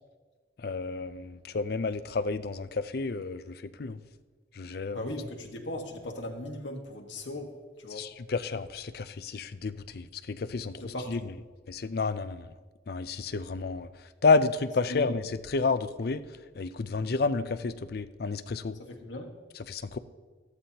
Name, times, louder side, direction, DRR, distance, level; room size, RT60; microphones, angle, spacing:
voice 1, 0.6-4.0 4.5-5.1 7.9-11.3 11.7-12.5 12.9-13.9 14.2-16.2 16.6-18.8 19.7-20.0, left 4 dB, 55° left, 12 dB, 0.5 m, -30 dB
voice 2, 4.9-7.5 7.8-8.1 10.8-11.3 14.9-15.1 18.8-19.3, left 1 dB, 80° left, 2 dB, 1.5 m, -38 dB
14.0 x 13.0 x 2.9 m, 1.4 s
head